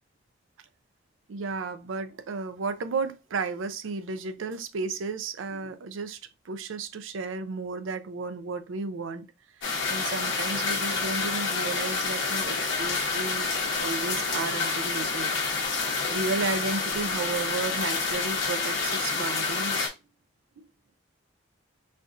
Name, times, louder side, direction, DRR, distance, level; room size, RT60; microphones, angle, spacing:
voice 1, 1.3-6.2 6.4-9.2 9.6-15.4 15.7-15.8 16.1-19.9 20.6-20.7, right 4 dB, 85° right, 0.5 m, -33 dB
sound 1, 9.6-19.9, left 4 dB, 75° left, 1.1 m, -28 dB
4.3 x 2.4 x 2.5 m
head